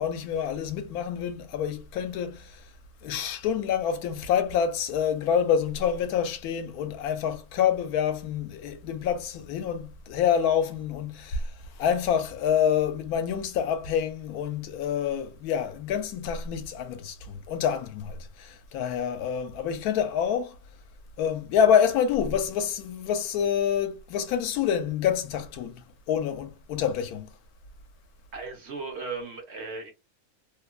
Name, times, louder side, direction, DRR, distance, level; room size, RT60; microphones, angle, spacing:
voice 1, 0.0-2.5 3.0-11.4 11.8-20.5 21.2-25.8 26.1-27.3, left 8 dB, 80° left, 1.1 m, -27 dB
voice 2, 28.3-29.9, right 4 dB, 60° right, 0.8 m, -36 dB
2.9 x 2.1 x 2.3 m
omnidirectional pair, 1.6 m